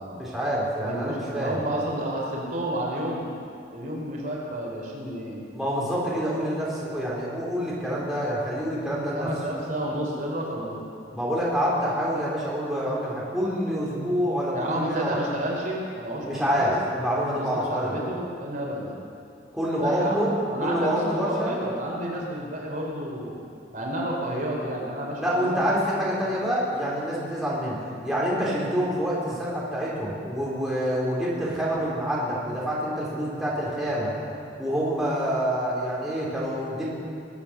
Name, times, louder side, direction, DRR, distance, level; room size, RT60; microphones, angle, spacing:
voice 1, 0.2-1.5 5.5-9.3 11.1-15.2 16.2-18.0 19.5-21.5 25.2-27.8 28.0-34.1 34.6-36.9, equal, ahead, -7 dB, 3.6 m, -27 dB
voice 2, 0.8-3.3 3.7-5.4 9.1-10.8 14.5-16.7 17.3-18.9 19.8-23.4 23.7-25.6 26.2-26.3, right 1 dB, 50° right, -3 dB, 3.4 m, -31 dB
23.0 x 8.5 x 7.0 m, 2.5 s
head